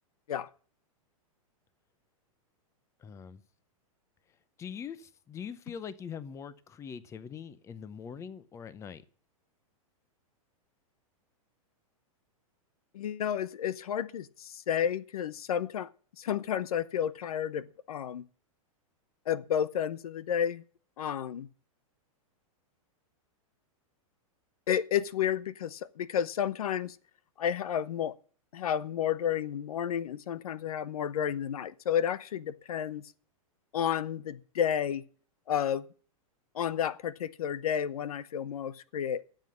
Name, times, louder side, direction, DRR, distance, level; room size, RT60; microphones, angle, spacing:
voice 1, 3.0-3.4 4.6-9.0, left 7 dB, 15° left, 0.7 m, -42 dB
voice 2, 12.9-15.9 16.2-18.2 19.3-20.6 21.0-21.5 24.7-27.0 27.4-28.1 28.5-33.0 33.7-35.0 35.5-35.8 36.5-39.2, left 9 dB, 85° left, 0.9 m, -31 dB
13.0 x 7.6 x 7.7 m
supercardioid pair, 145°, 18 cm